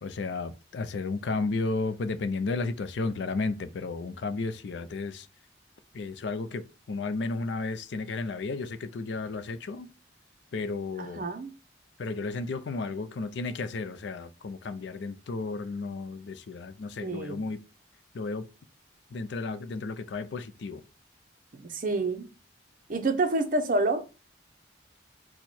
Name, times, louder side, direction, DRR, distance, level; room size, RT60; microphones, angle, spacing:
voice 1, 0.0-5.3 5.9-9.9 10.5-11.3 12.0-17.6 18.1-18.5 19.1-20.8, left 3 dB, 65° left, 0.4 m, -33 dB
voice 2, 11.0-11.5 17.0-17.4 21.6-22.3 22.9-24.0, right 2 dB, 45° right, 0.6 m, -28 dB
4.4 x 2.2 x 4.1 m
head